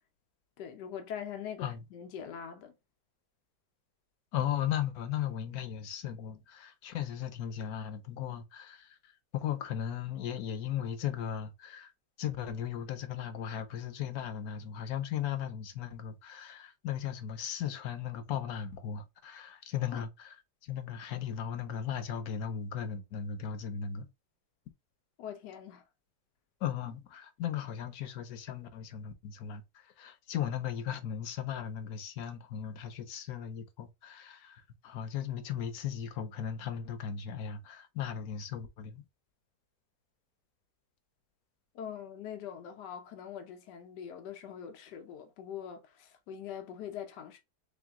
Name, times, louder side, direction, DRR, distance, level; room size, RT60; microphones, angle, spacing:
voice 1, 0.6-2.7 19.9-20.0 25.2-25.8 41.7-47.4, left 8 dB, 90° left, 1.3 m, -43 dB
voice 2, 4.3-9.0 9.3-11.9 12.2-20.1 20.6-24.1 26.6-39.0, left 9 dB, 70° left, 1.1 m, -37 dB
3.4 x 3.0 x 3.5 m
omnidirectional pair, 1.8 m